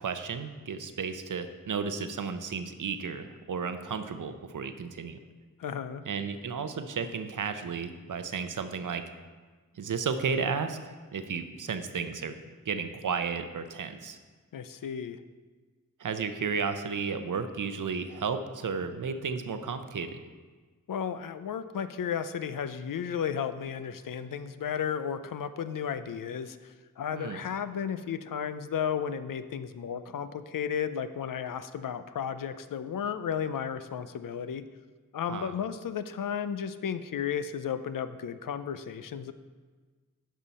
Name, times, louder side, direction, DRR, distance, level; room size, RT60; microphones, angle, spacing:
voice 1, 0.0-5.2 6.1-9.0 9.7-12.4 12.7-14.2 16.0-20.2 27.1-27.4 35.3-35.5, right 5 dB, 75° right, 9 dB, 0.7 m, -33 dB
voice 2, 5.6-6.0 14.5-15.2 20.9-34.7 35.1-39.3, left 8 dB, 85° left, 11 dB, 0.5 m, -34 dB
10.0 x 5.6 x 4.1 m, 1.4 s
wide cardioid pair, 55°, 32 cm